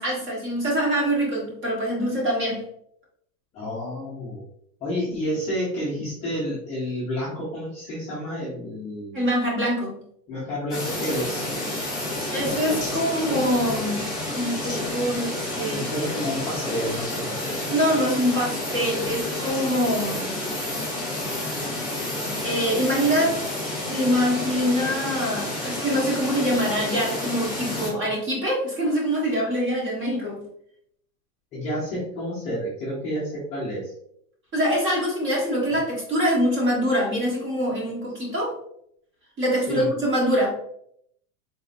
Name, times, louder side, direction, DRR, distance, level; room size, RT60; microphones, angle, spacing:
voice 1, 0.0-2.6 9.1-10.0 12.3-14.1 14.3-15.9 17.7-20.4 21.1-21.2 22.4-23.4 23.9-30.4 34.5-38.5 39.4-40.6, equal, 25° right, -4 dB, 1.4 m, -24 dB
voice 2, 3.5-4.4 4.8-9.2 10.3-11.5 15.7-17.6 27.6-27.9 31.5-33.9 39.7-39.9, equal, 15° left, -9 dB, 0.6 m, -30 dB
sound 1, 10.7-27.9, left 1 dB, ahead, 1.5 m, -30 dB
4.1 x 3.5 x 2.5 m, 0.71 s
supercardioid pair, 165°, 47 cm